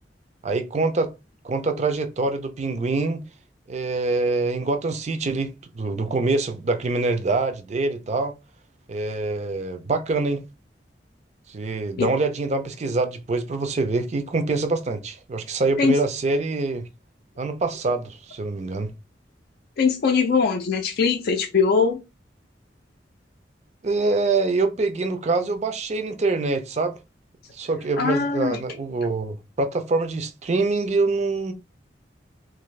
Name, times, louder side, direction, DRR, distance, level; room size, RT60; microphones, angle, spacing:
voice 1, 0.4-1.1 1.4-3.2 3.7-8.3 8.9-10.4 11.5-16.9 17.4-18.9 23.8-27.0 27.5-31.5, right 3 dB, 40° right, 0.5 m, -25 dB
voice 2, 19.8-22.0 28.0-28.6, left 5 dB, 55° left, 0.4 m, -21 dB
2.5 x 2.5 x 3.1 m
head